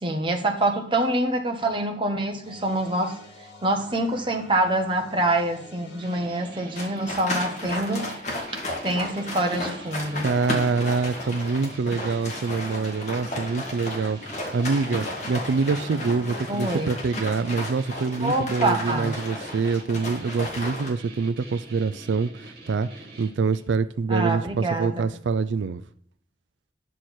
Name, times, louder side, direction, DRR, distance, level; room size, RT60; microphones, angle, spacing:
voice 1, 0.0-3.2 3.6-8.1 8.8-10.3 16.5-16.9 18.1-19.2 24.1-25.1, right 1 dB, 30° right, 1.2 m, -25 dB
sound 1, 2.4-7.6 9.1-16.4, left 2 dB, 75° left, 2.8 m, -47 dB
sound 2, 6.0-23.8, right 2 dB, 55° right, 2.5 m, -45 dB
sound 3, 6.8-20.9, left 1 dB, 40° left, 2.5 m, -33 dB
voice 2, 10.2-14.2 14.5-22.9 23.2-25.8, right 4 dB, 85° right, 0.4 m, -25 dB
9.9 x 6.4 x 4.4 m
head